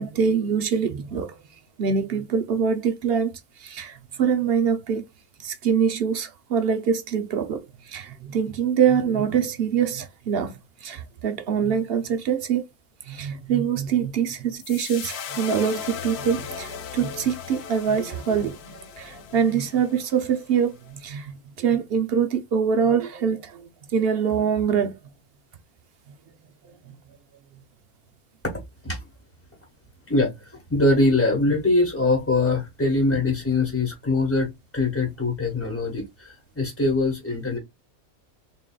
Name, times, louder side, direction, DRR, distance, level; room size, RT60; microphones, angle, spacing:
voice 1, 0.0-1.4 1.8-3.3 3.6-5.0 5.4-12.6 13.1-23.6 23.9-24.9, right 7 dB, 60° right, 0.6 m, -24 dB
sound 1, 14.6-20.9, left 8 dB, 60° left, 0.7 m, -37 dB
voice 2, 28.4-29.0 30.1-37.6, left 2 dB, 10° left, 1.1 m, -23 dB
3.9 x 3.7 x 2.2 m
omnidirectional pair, 1.5 m